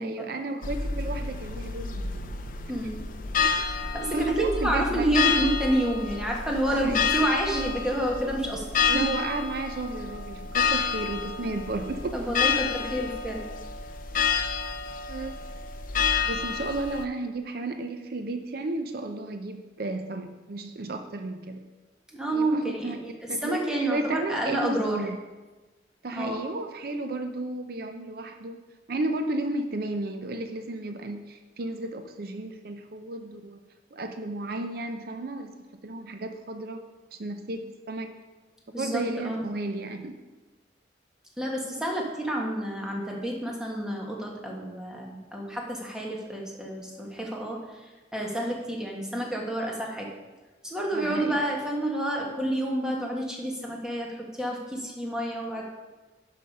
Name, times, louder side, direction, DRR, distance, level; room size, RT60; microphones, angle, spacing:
voice 1, 0.0-2.3 3.4-3.5 4.1-5.1 6.7-7.0 8.9-12.3 15.1-15.4 15.9-21.7 22.3-23.0 23.3-23.6 23.9-25.2 26.0-33.6 33.9-35.5 35.8-38.1 38.8-40.2 41.7-41.9 50.9-51.4, right 2 dB, 55° right, 7 dB, 0.5 m, -33 dB
sound 1, 0.6-17.0, left 5 dB, 50° left, 0.6 m, -29 dB
voice 2, 2.7-3.0 3.9-8.6 8.9-9.1 12.1-13.5 22.1-25.0 26.2-26.4 38.7-39.4 41.4-47.6 48.1-50.1 50.6-55.6, right 1 dB, 5° right, -1 dB, 1.4 m, -29 dB
11.5 x 5.1 x 5.3 m, 1.2 s
head